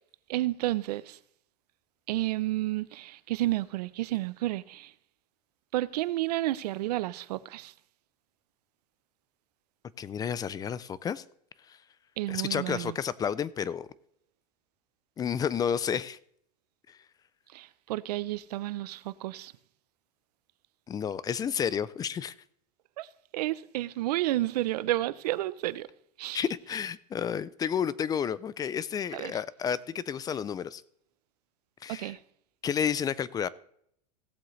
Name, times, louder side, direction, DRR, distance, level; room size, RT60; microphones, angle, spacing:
voice 1, 0.3-1.2 2.1-4.9 5.7-7.7 12.2-13.0 17.5-19.5 23.0-23.1 23.3-25.9 26.2-26.4 29.1-29.3 31.9-32.2, right 16 dB, 80° right, 0.6 m, -31 dB
voice 2, 10.0-11.2 11.7-11.8 12.3-13.9 15.2-16.2 16.9-17.0 20.9-22.3 26.3-30.8 31.8-32.1 32.6-33.5, left 8 dB, 20° left, 0.4 m, -31 dB
17.0 x 7.7 x 3.2 m
supercardioid pair, 130°, 20 cm